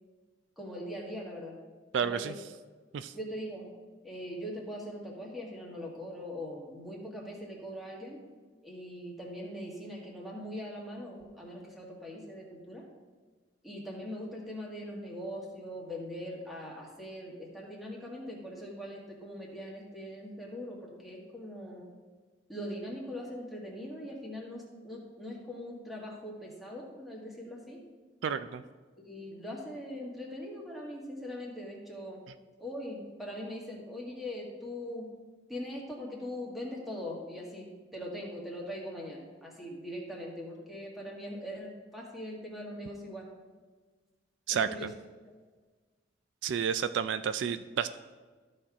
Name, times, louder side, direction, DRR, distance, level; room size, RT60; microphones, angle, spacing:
voice 1, 0.6-1.6 1.9-2.4 3.1-3.7 4.0-8.2 8.6-12.8 13.6-21.9 22.5-27.8 29.0-32.2 32.6-35.1 35.5-43.3 44.5-44.9, equal, ahead, -3 dB, 1.8 m, -41 dB
voice 2, 1.9-2.3 2.9-3.1 28.2-28.6 44.5-44.7 46.4-47.9, right 7 dB, 75° right, 12 dB, 0.3 m, -30 dB
13.0 x 4.4 x 4.8 m, 1.4 s
head